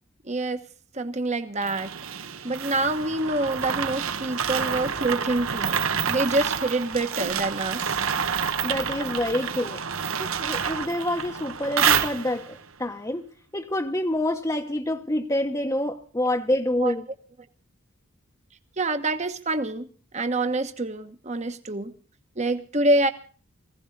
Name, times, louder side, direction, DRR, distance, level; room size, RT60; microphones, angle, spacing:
voice 1, 0.2-0.6 0.9-1.9 2.4-5.8 6.1-8.0 16.8-16.9 18.8-19.9 20.1-21.9 22.4-23.1, right 2 dB, 35° right, 1.2 m, -26 dB
sound 1, 1.6-12.6, right 7 dB, 75° right, 1.2 m, -28 dB
voice 2, 8.6-9.8 10.2-13.3 13.5-17.0, left 1 dB, 15° left, 0.9 m, -27 dB
20.5 x 16.5 x 4.0 m
head